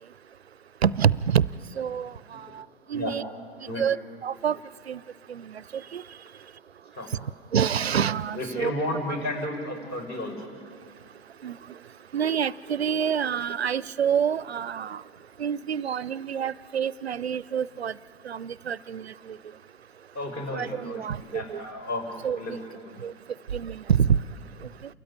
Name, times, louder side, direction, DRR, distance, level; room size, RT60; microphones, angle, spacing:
voice 1, 0.8-1.4 1.8-2.6 2.9-3.2 3.8-4.0 4.2-4.6 4.9-5.0 5.3-6.0 7.5-8.7 11.4-11.6 12.1-15.0 15.4-17.9 18.2-19.1 20.5-21.6 22.2-22.6 23.0-23.1 23.5-24.2, right 8 dB, 90° right, 21 dB, 0.5 m, -27 dB
voice 2, 8.3-10.4 20.1-23.0, left 1 dB, 35° left, 4 dB, 5.6 m, -33 dB
28.5 x 13.5 x 9.9 m, 2.1 s
figure-of-eight pair, 100°, 31 cm